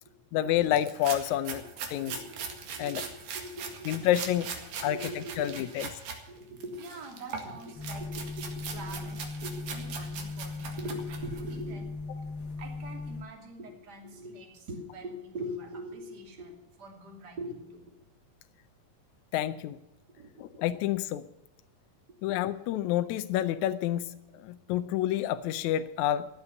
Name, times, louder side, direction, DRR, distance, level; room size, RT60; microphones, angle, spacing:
voice 1, 0.3-1.6 1.9-2.1 2.8-3.0 3.9-4.5 4.8-5.0 5.4-5.9 19.3-19.8 20.4-21.3 22.2-26.3, left 12 dB, 80° left, 11 dB, 1.7 m, -28 dB
sound 1, 0.7-6.2 6.6-11.5, right 6 dB, 85° right, 3.6 m, -40 dB
voice 2, 2.0-5.8 6.3-12.3 12.6-17.8 20.2-20.4 22.1-22.2, equal, 30° right, 1 dB, 3.1 m, -43 dB
sound 2, 7.7-13.2, left 3 dB, 45° left, 1.8 m, -38 dB
15.0 x 9.8 x 7.0 m, 0.94 s
omnidirectional pair, 3.8 m